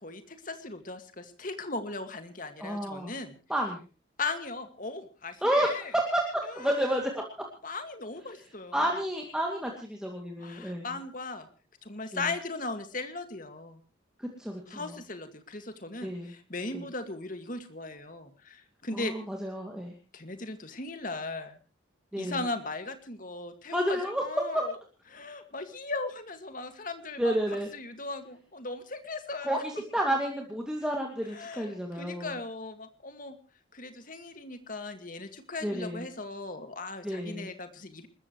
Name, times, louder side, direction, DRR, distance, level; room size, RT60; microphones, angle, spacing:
voice 1, 0.0-3.4 4.2-5.9 6.4-6.9 7.6-8.9 10.4-11.5 11.8-13.8 14.7-19.1 20.1-21.6 22.2-24.7 25.1-27.4 27.7-29.6 31.3-33.4 33.7-38.1, left 3 dB, 40° left, 7 dB, 2.1 m, -38 dB
voice 2, 2.6-3.1 3.5-3.8 5.4-7.2 8.7-10.9 12.1-12.3 14.2-14.9 16.0-16.3 16.7-16.8 18.9-20.0 22.1-22.4 23.7-24.2 24.5-24.6 27.2-27.7 29.4-32.3 35.6-36.1 37.0-37.5, right 1 dB, 5° right, 0 dB, 2.5 m, -30 dB
28.5 x 14.0 x 3.2 m, 0.35 s
head